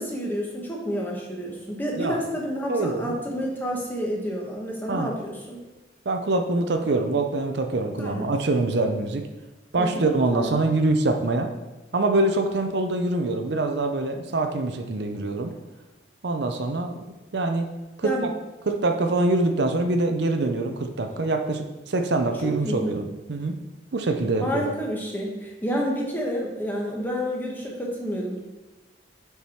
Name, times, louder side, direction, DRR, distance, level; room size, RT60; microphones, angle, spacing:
voice 1, 0.0-5.6 8.0-8.3 9.8-10.6 18.0-18.3 22.4-22.9 24.4-28.4, equal, 10° left, -2 dB, 1.1 m, -29 dB
voice 2, 2.7-3.2 4.9-5.1 6.1-9.2 9.7-11.5 11.9-15.5 16.2-17.0 17.3-17.7 18.0-18.1 18.7-23.5 23.9-24.7, right 2 dB, 65° right, 5 dB, 0.6 m, -24 dB
6.9 x 4.8 x 4.3 m, 1.1 s
head